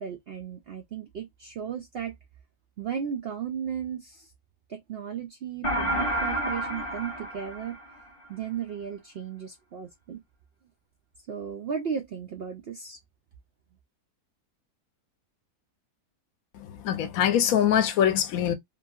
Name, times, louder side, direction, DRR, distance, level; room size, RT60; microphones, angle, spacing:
voice 1, 0.0-2.1 2.8-4.3 4.7-7.8 8.3-10.2 11.3-13.0, right 7 dB, 90° right, 0.5 m, -35 dB
sound 1, 5.6-8.3, right 1 dB, 30° left, 0.7 m, -30 dB
voice 2, 16.7-18.5, left 9 dB, 70° left, 1.0 m, -23 dB
2.9 x 2.6 x 2.3 m
omnidirectional pair, 1.6 m